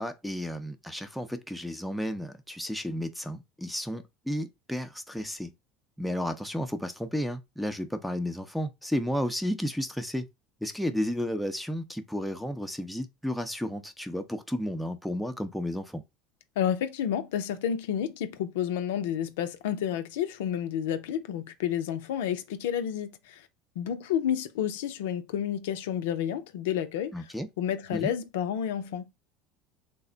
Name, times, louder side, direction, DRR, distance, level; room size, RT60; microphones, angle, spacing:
voice 1, 0.0-5.5 6.0-10.3 10.6-16.0 27.1-27.5 27.9-28.1, equal, ahead, 0.5 m, -32 dB
voice 2, 16.6-23.4 23.8-27.1 27.6-29.1, left 9 dB, 80° left, 0.4 m, -30 dB
3.3 x 2.1 x 3.8 m
hypercardioid pair, 85°, 0 cm